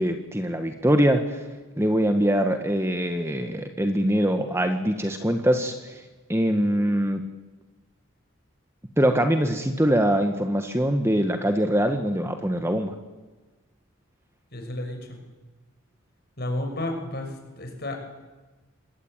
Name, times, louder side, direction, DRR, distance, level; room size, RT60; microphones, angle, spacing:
voice 1, 0.0-1.4 1.8-6.0 6.3-7.2 9.0-13.0, equal, 10° right, 6 dB, 1.4 m, -23 dB
voice 2, 14.5-15.2 16.4-18.0, left 1 dB, 45° left, 4 dB, 6.2 m, -32 dB
26.5 x 22.0 x 9.0 m, 1.2 s
head